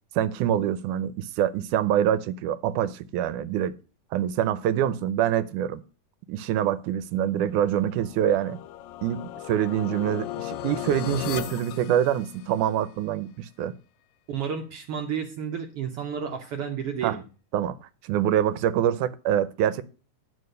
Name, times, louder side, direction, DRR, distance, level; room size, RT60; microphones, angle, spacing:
voice 1, 0.2-3.7 4.1-5.8 6.3-8.6 9.0-13.7 17.0-17.2 17.5-17.8 18.0-19.8, right 10 dB, 85° right, 2.1 m, -25 dB
sound 1, 7.6-12.8, left 13 dB, 80° left, 1.7 m, -37 dB
voice 2, 14.3-17.2, right 7 dB, 65° right, 1.6 m, -31 dB
9.8 x 4.9 x 6.5 m
omnidirectional pair, 3.6 m